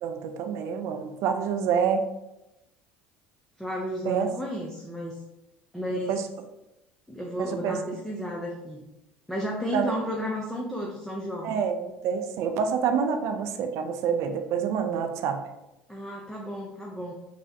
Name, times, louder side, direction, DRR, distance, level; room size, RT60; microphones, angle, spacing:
voice 1, 0.0-2.0 4.1-4.3 6.1-6.2 7.4-7.8 9.7-9.8 11.4-15.4, right 7 dB, 60° right, 6 dB, 0.4 m, -27 dB
voice 2, 3.6-5.2 5.7-6.2 7.1-8.8 9.3-11.5 15.9-17.1, equal, 5° left, -2 dB, 0.4 m, -33 dB
3.4 x 2.0 x 2.6 m, 0.94 s
hypercardioid pair, 70°, 6 cm